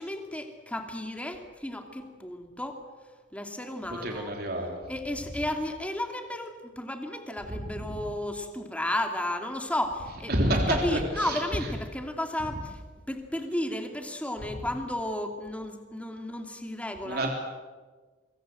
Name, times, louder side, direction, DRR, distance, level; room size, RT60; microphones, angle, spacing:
voice 1, 0.0-2.8 3.3-4.3 4.9-12.8 13.1-17.3, left 1 dB, 5° left, 4 dB, 2.6 m, -33 dB
voice 2, 3.9-4.8 7.9-8.0 10.3-11.7 17.1-17.3, right 1 dB, 55° right, 1 dB, 3.4 m, -28 dB
25.5 x 23.0 x 7.8 m, 1.4 s
head